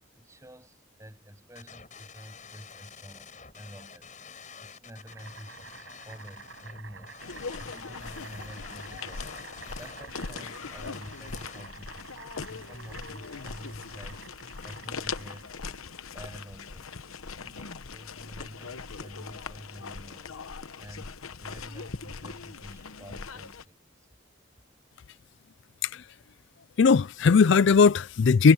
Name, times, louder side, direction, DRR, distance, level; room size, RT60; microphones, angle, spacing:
voice 1, 0.1-7.2 7.6-9.3 9.8-14.3 14.6-15.5 16.1-17.0 17.4-20.4 20.8-24.1, equal, 15° right, 7.2 m, -48 dB
sound 1, 1.6-11.8, left 5 dB, 35° left, 7.8 m, -49 dB
Boiling, 5.0-15.6, right 5 dB, 65° right, 6.8 m, -49 dB
sound 2, 7.2-23.6, left 5 dB, 90° left, 1.0 m, -40 dB
voice 2, 26.8-28.5, left 5 dB, 60° left, 0.4 m, -19 dB
head